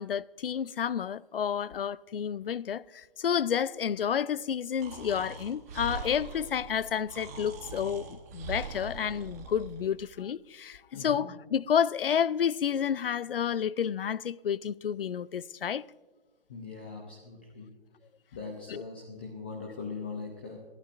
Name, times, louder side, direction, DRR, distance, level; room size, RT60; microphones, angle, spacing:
voice 1, 0.0-15.8 18.7-18.8, left 8 dB, 75° left, 0.5 m, -30 dB
Breathing, 4.8-9.9, right 4 dB, 15° right, 1.0 m, -42 dB
voice 2, 10.9-11.3 16.5-17.7 18.3-20.6, left 4 dB, 10° left, 0.5 m, -41 dB
30.0 x 11.5 x 2.5 m
hypercardioid pair, 155°, 29 cm